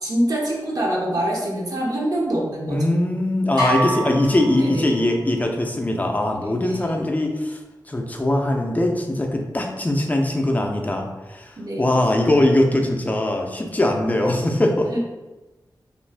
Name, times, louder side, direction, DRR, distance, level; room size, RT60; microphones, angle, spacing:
voice 1, 0.0-2.8 4.6-4.9 6.5-7.0 11.6-11.9 14.9-15.0, right 1 dB, 55° right, -3 dB, 0.7 m, -25 dB
voice 2, 2.7-7.6 7.9-15.0, left 1 dB, 20° left, 2 dB, 0.4 m, -21 dB
sound 1, 3.6-5.4, right 1 dB, 70° right, 1.3 m, -27 dB
2.5 x 2.3 x 3.3 m, 1.1 s
wide cardioid pair, 80°, 8 cm